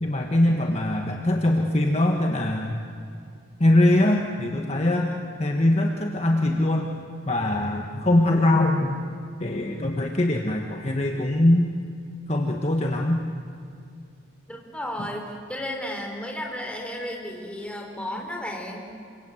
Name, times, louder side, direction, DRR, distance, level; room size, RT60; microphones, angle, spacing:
voice 1, 0.0-2.8 3.6-5.1 5.4-6.9 7.3-9.0 9.4-11.7 12.3-13.2, left 1 dB, 30° left, 1 dB, 1.5 m, -22 dB
voice 2, 14.5-18.9, left 1 dB, 5° left, 0 dB, 4.0 m, -33 dB
27.5 x 25.5 x 7.9 m, 2.5 s
head